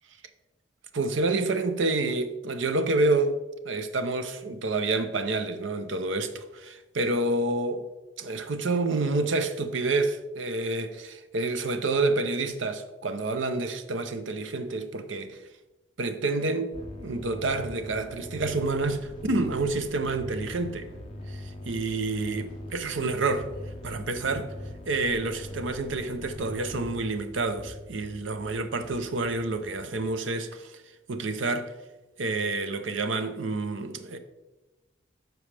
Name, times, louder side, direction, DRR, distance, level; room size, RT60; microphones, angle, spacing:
voice 1, 0.9-3.4 3.6-7.9 8.2-15.4 16.0-20.9 21.3-23.5 23.8-24.5 24.9-30.8 31.1-31.7 32.2-34.2, right 3 dB, 75° right, 0.7 m, -28 dB
sound 1, 16.7-27.0, left 1 dB, 30° left, 0.4 m, -43 dB
sound 2, 16.7-30.0, left 1 dB, 25° right, 1.4 m, -46 dB
12.5 x 4.7 x 3.3 m
head